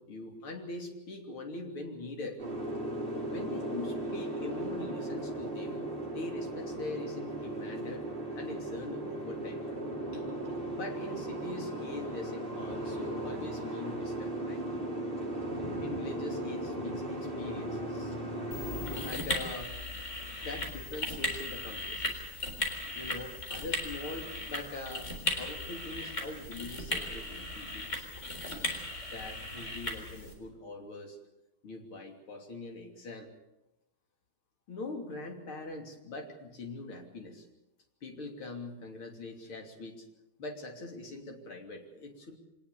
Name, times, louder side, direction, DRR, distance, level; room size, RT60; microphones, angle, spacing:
voice 1, 0.0-2.4 3.3-5.9 6.1-8.1 8.4-9.7 10.1-10.2 10.7-14.6 15.8-18.2 19.0-19.8 20.4-22.3 22.9-25.1 25.4-28.0 29.1-31.2 31.6-33.3 34.7-37.5 38.0-40.0 40.4-42.4, left 2 dB, 75° left, 3 dB, 3.9 m, -42 dB
Boat Water vehicle, 2.4-19.1, right 1 dB, 25° right, 7.0 m, -37 dB
sound 1, 18.5-30.3, left 2 dB, 35° left, 4.4 m, -37 dB
24.5 x 19.5 x 6.9 m, 0.94 s
omnidirectional pair, 2.3 m